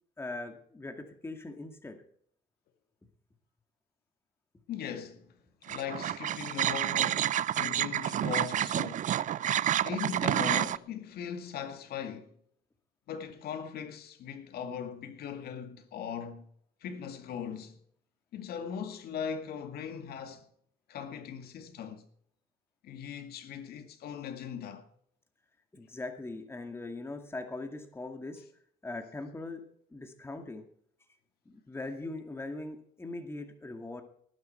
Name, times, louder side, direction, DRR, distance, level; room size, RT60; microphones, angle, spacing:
voice 1, 0.2-2.0 25.7-28.4 28.8-29.6 29.9-30.6 31.5-34.0, left 2 dB, 15° left, 2.2 m, -40 dB
voice 2, 4.7-5.3 5.6-9.1 9.8-12.3 13.1-16.5 16.8-17.8 18.3-20.5 20.9-22.0 22.8-24.9, left 7 dB, 65° left, 2.1 m, -39 dB
sound 1, 5.7-10.8, right 11 dB, 50° right, 0.5 m, -29 dB
19.5 x 9.5 x 4.5 m
cardioid pair, 110°, 17 cm